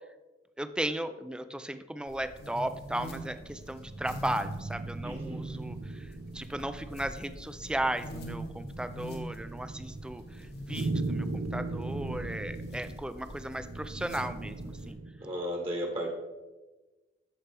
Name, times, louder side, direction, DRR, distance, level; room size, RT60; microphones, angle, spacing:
voice 1, 0.6-6.1 6.3-15.0, right 1 dB, 5° right, 11 dB, 0.3 m, -36 dB
sound 1, 2.1-14.9, equal, 60° left, 1.3 m, -45 dB
sound 2, 2.6-15.3, right 2 dB, 75° right, 0.6 m, -39 dB
voice 2, 5.0-5.5 15.2-16.1, equal, 30° right, 1 dB, 1.2 m, -34 dB
13.5 x 4.5 x 3.3 m, 1.2 s
head